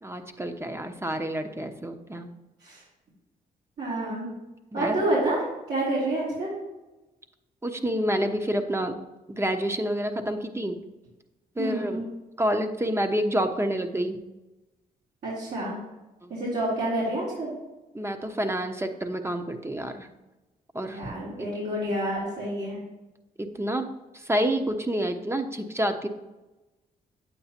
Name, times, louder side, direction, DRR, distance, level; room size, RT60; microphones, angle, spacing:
voice 1, 0.0-2.3 4.7-4.9 7.6-8.9 9.3-10.8 11.6-12.0 12.4-14.2 16.2-16.3 17.9-20.1 20.7-21.1 23.4-23.9 24.1-26.1, equal, 15° right, 7 dB, 1.0 m, -28 dB
voice 2, 3.8-4.3 4.7-6.5 11.6-12.1 15.2-15.8 16.3-17.5 20.9-22.8, right 1 dB, 70° right, -9 dB, 3.1 m, -28 dB
8.7 x 8.4 x 2.9 m, 1.0 s
supercardioid pair, 55°, 17 cm